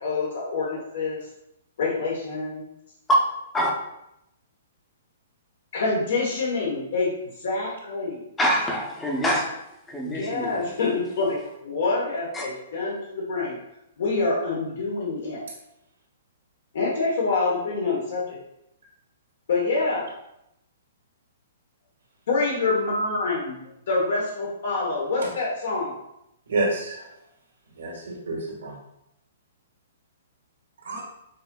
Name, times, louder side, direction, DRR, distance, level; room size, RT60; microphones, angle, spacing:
voice 1, 0.0-1.2 1.8-2.6 5.7-7.1 7.4-8.2 10.0-13.6 14.0-15.4 16.7-18.4 19.5-20.1 22.3-25.9, left 3 dB, 65° left, -5 dB, 0.9 m, -26 dB
voice 2, 8.4-9.5 9.9-10.6 12.3-12.4, right 1 dB, 10° left, -2 dB, 0.6 m, -24 dB
voice 3, 26.5-27.1 27.8-28.7 30.8-31.2, right 2 dB, 90° right, -3 dB, 1.5 m, -29 dB
5.3 x 2.6 x 2.2 m, 0.83 s
hypercardioid pair, 165°, 0 cm